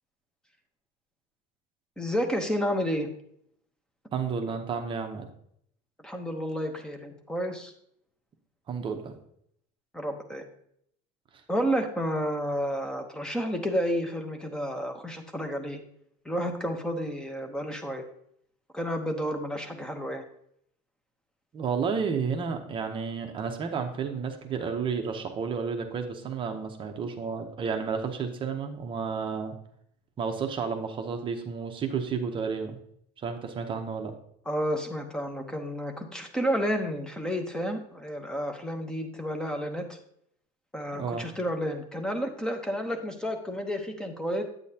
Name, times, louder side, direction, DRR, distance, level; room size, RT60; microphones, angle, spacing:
voice 1, 2.0-3.1 6.0-7.7 9.9-10.4 11.5-15.8 16.2-18.0 18.7-20.2 34.5-40.0 40.7-44.4, equal, 5° left, 4 dB, 0.8 m, -31 dB
voice 2, 4.1-5.3 8.7-9.1 21.5-29.5 30.2-32.8 33.2-34.1 40.9-41.2, right 6 dB, 30° right, 5 dB, 0.8 m, -31 dB
8.7 x 8.5 x 2.8 m, 0.70 s
cardioid pair, 165°, 18 cm